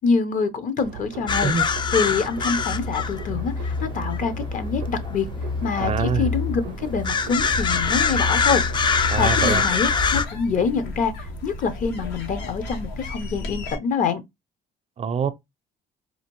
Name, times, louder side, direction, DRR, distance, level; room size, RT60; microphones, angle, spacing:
voice 1, 0.0-1.5 1.9-5.3 5.6-8.6 9.2-11.1 11.4-14.2, left 5 dB, 50° left, 0.8 m, -25 dB
sound 1, 0.8-10.2, right 10 dB, 90° right, 0.5 m, -39 dB
sound 2, 1.3-10.2, left 5 dB, 25° left, 0.4 m, -24 dB
voice 2, 5.8-6.3 9.1-9.6 15.0-15.3, right 6 dB, 40° right, 0.5 m, -24 dB
sound 3, 7.3-13.8, left 2 dB, 80° left, 1.3 m, -35 dB
4.2 x 2.6 x 2.9 m
cardioid pair, 110°, 17 cm